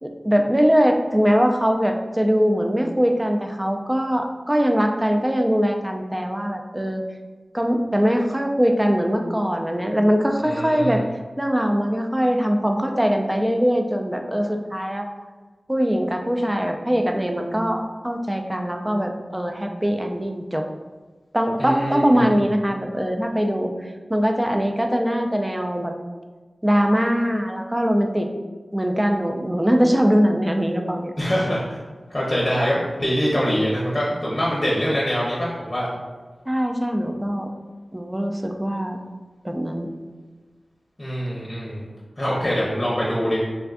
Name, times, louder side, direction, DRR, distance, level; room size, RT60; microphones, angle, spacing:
voice 1, 0.0-7.0 7.5-11.0 11.4-15.1 15.7-20.7 21.3-23.7 24.1-25.9 26.6-28.3 28.7-31.1 36.5-37.5 37.9-39.0 39.4-39.9, equal, 15° right, 4 dB, 0.3 m, -21 dB
voice 2, 10.4-11.0 21.6-22.3 31.2-31.8 32.1-35.9 41.0-41.8 42.2-43.4, equal, 35° left, -6 dB, 0.7 m, -24 dB
3.4 x 2.2 x 2.4 m, 1.4 s
cardioid pair, 45°, 0 cm